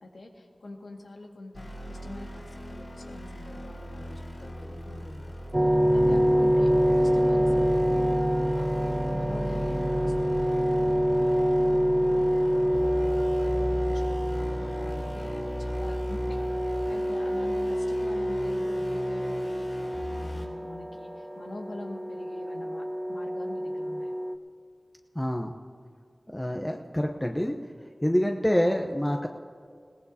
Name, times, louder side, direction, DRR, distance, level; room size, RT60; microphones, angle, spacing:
voice 1, 0.0-5.3 5.6-6.7 6.9-10.7 11.1-19.6 20.0-22.8 23.1-24.1, left 2 dB, 90° left, 0 dB, 2.0 m, -45 dB
sound 1, 1.5-20.5, equal, 35° left, 4.8 m, -37 dB
sound 2, 5.5-24.4, equal, 15° right, 0.8 m, -26 dB
voice 2, 25.2-25.5 26.3-27.5 28.0-29.3, equal, 15° left, 2 dB, 0.8 m, -26 dB
21.5 x 18.0 x 2.9 m, 2.3 s
wide cardioid pair, 45°, 0 cm